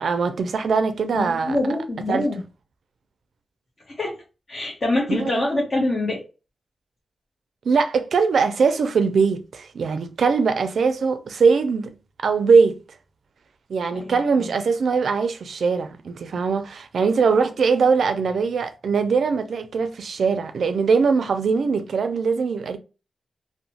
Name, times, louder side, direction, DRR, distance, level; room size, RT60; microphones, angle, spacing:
voice 1, 0.0-1.6 2.1-2.3 5.1-5.5 7.6-11.9 12.2-12.8 13.7-22.8, right 5 dB, 75° right, 0.4 m, -21 dB
voice 2, 1.1-2.4 3.9-4.1 4.5-6.2 13.9-14.2, left 2 dB, 45° left, 0.8 m, -24 dB
2.9 x 2.0 x 2.7 m
wide cardioid pair, 90°, 0 cm